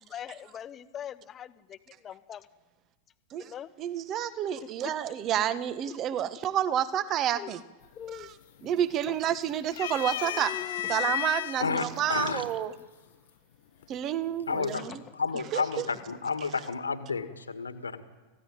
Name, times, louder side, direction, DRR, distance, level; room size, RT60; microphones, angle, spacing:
voice 1, 0.0-2.5 3.4-3.7 7.4-7.5 7.9-8.3 9.1-9.2 10.2-11.0 14.9-15.0, left 9 dB, 25° left, 14 dB, 1.1 m, -42 dB
voice 2, 3.8-7.6 8.1-8.3 8.6-10.5 10.9-12.7 13.9-15.0 15.5-15.8, right 10 dB, 35° right, 15 dB, 1.4 m, -29 dB
sound 1, 7.8-8.2 8.6-9.3 9.7-11.6 12.5-12.6 13.8-14.3, left 13 dB, 60° left, 1.0 m, -33 dB
voice 3, 11.6-12.5 14.5-14.9 15.1-18.0, left 5 dB, 75° left, 10 dB, 1.8 m, -31 dB
29.5 x 16.0 x 9.1 m, 1.3 s
figure-of-eight pair, 90°, 0 cm